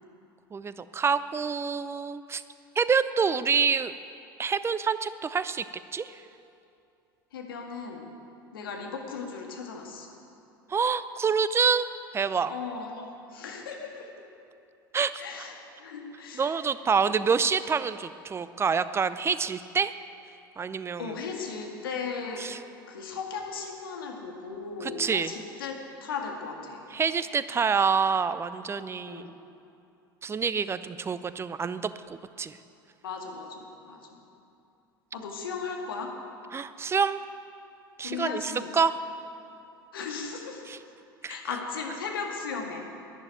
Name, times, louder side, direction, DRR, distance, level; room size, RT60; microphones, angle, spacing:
voice 1, 0.5-2.4 2.8-3.9 4.4-5.7 5.9-6.2 10.7-11.9 12.1-12.5 14.9-15.2 16.3-19.9 20.6-21.1 22.4-22.6 24.8-25.3 26.9-29.3 30.2-32.6 36.5-37.2 38.0-39.0 40.7-40.8 41.2-41.4, right 6 dB, 20° right, 14 dB, 0.6 m, -27 dB
voice 2, 7.3-8.1 8.5-10.1 12.5-14.2 15.2-16.6 21.0-22.4 22.9-26.8 29.1-29.4 33.0-34.2 35.1-36.1 38.0-38.7 39.9-40.7 41.2-42.8, left 5 dB, 75° left, 1 dB, 1.9 m, -37 dB
11.5 x 10.5 x 9.2 m, 2.6 s
figure-of-eight pair, 70°, 12 cm